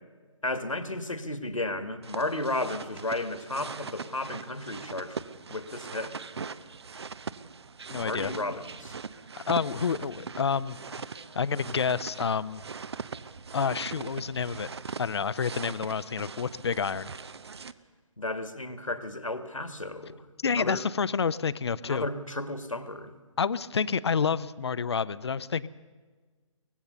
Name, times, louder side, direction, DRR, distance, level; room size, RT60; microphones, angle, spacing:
voice 1, 0.4-5.2 5.5-6.2 7.9-8.9 18.2-20.2 20.5-20.8 21.8-23.1, left 2 dB, 80° left, 9 dB, 2.0 m, -33 dB
sound 1, 2.0-17.7, right 5 dB, 55° right, 0.9 m, -41 dB
voice 2, 7.9-8.3 9.5-10.8 11.3-12.6 13.5-14.7 15.0-17.1 20.4-22.1 23.4-25.7, left 6 dB, 55° left, 16 dB, 0.7 m, -29 dB
24.0 x 19.0 x 6.8 m, 1.4 s
figure-of-eight pair, 140°, 17 cm